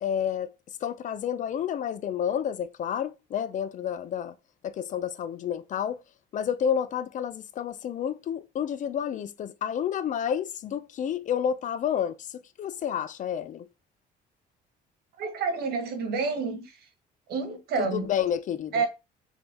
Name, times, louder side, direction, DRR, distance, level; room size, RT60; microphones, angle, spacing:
voice 1, 0.0-0.5 0.8-4.3 4.6-6.0 6.3-12.1 12.6-13.6 18.1-18.7, left 8 dB, 50° left, 0.5 m, -30 dB
voice 2, 15.2-16.9 17.3-18.1 18.7-18.9, right 4 dB, 70° right, 1.4 m, -29 dB
4.0 x 3.6 x 3.4 m
cardioid pair, 110°, 17 cm